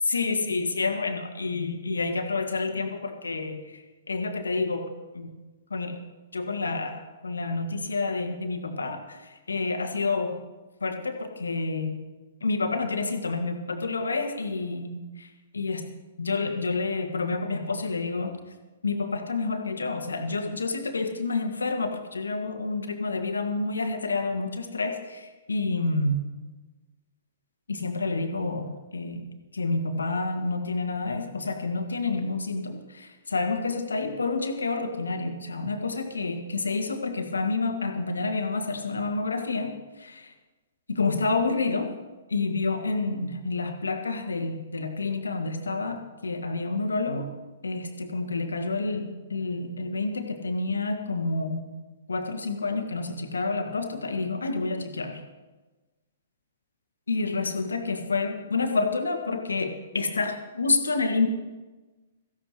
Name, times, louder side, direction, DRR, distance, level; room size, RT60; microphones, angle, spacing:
voice 1, 0.0-4.9 5.1-5.3 5.7-6.0 6.3-9.2 9.5-10.4 10.8-11.9 12.4-15.3 15.5-15.8 16.2-18.3 18.8-26.2 27.7-29.2 29.5-40.3 40.9-41.9 42.3-47.3 47.6-51.7 52.1-55.2 57.1-61.3, left 3 dB, 70° left, 5 dB, 1.9 m, -29 dB
17.0 x 15.5 x 3.1 m, 1.2 s
figure-of-eight pair, 115°, 0 cm